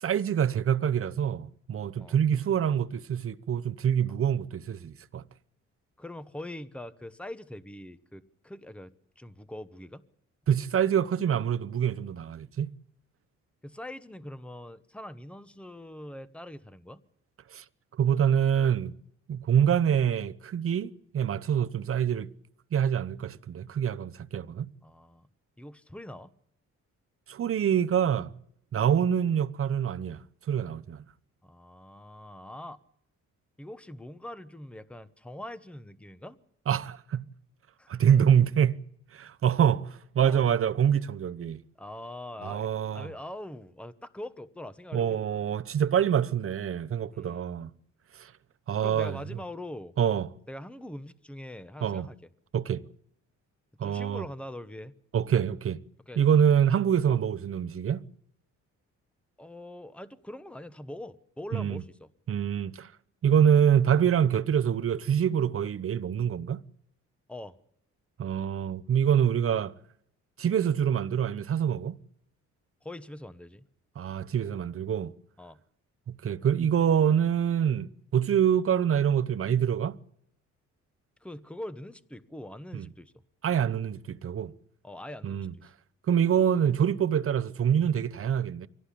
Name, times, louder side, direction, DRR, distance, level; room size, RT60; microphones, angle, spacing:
voice 1, 0.0-5.2 10.5-12.7 17.5-17.6 18.0-18.9 19.3-22.3 22.7-24.7 27.3-28.3 28.7-30.2 30.5-31.0 36.7-37.2 37.9-38.8 39.1-41.6 42.4-43.1 44.9-47.7 48.2-48.3 48.7-49.2 50.0-50.3 51.8-52.1 52.5-52.8 53.8-54.2 55.1-55.8 56.2-58.0 61.5-61.8 62.3-62.9 63.2-66.6 68.2-69.7 70.4-71.9 74.0-75.1 76.2-80.0 82.7-82.9 83.4-84.5 85.2-85.5 86.1-88.7, right 8 dB, 45° right, 0.9 m, -25 dB
voice 2, 6.0-8.9 9.2-10.0 13.6-17.0 24.8-25.3 25.6-26.3 31.4-32.8 33.6-36.4 37.8-37.9 40.2-40.4 41.8-42.7 42.9-45.4 47.1-47.5 48.8-49.9 50.5-52.2 53.8-54.9 56.1-56.2 57.1-57.2 59.4-62.1 67.3-67.5 72.8-73.7 75.4-75.6 81.2-83.1 84.8-85.7, left 1 dB, 5° left, 1.0 m, -43 dB
24.0 x 17.5 x 8.5 m
cardioid pair, 90°, 30 cm